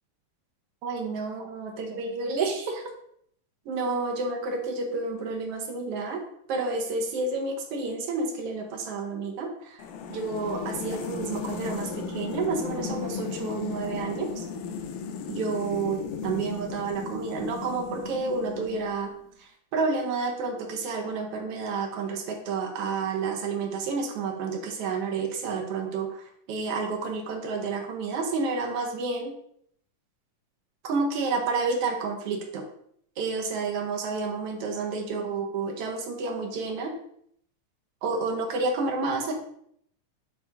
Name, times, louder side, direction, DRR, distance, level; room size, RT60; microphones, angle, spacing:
voice 1, 0.8-2.8 3.6-6.2 6.5-9.8 10.1-14.5 15.3-19.1 19.4-29.3 30.8-32.6 33.2-36.9 38.0-39.3, right 4 dB, 65° right, 2 dB, 1.5 m, -30 dB
sound 1, 9.8-19.1, left 6 dB, 85° left, 2.2 m, -35 dB
9.1 x 3.4 x 3.5 m, 0.67 s
omnidirectional pair, 3.6 m